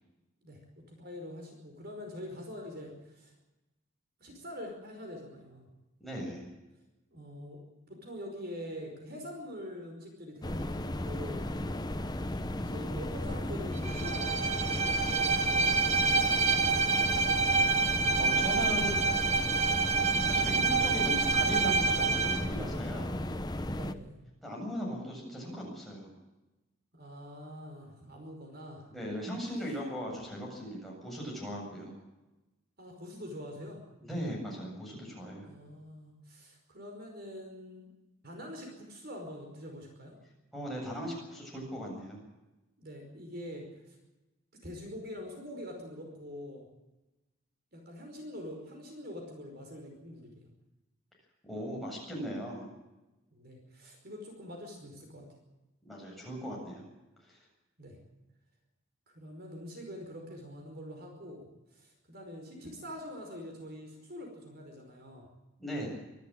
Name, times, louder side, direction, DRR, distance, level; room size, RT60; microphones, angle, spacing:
voice 1, 0.4-3.3 4.2-5.7 7.1-7.6 7.9-11.5 12.6-17.1 23.7-24.2 26.9-28.9 32.8-33.8 35.4-37.9 38.2-40.1 42.8-44.0 44.6-46.7 47.7-50.5 53.3-55.3 57.8-58.0 59.1-65.3, equal, 45° right, 2 dB, 5.2 m, -45 dB
voice 2, 6.0-6.5 18.2-19.0 20.2-23.2 24.4-26.1 28.9-31.9 34.0-35.5 40.5-42.2 51.4-52.7 55.8-56.9 57.2-57.4 65.6-65.9, equal, ahead, -3 dB, 7.9 m, -38 dB
sound 1, 10.4-23.9, left 1 dB, 20° left, 0.9 m, -35 dB
Bowed string instrument, 13.8-22.5, right 4 dB, 30° right, 1.3 m, -27 dB
25.0 x 13.5 x 9.0 m, 1.0 s
head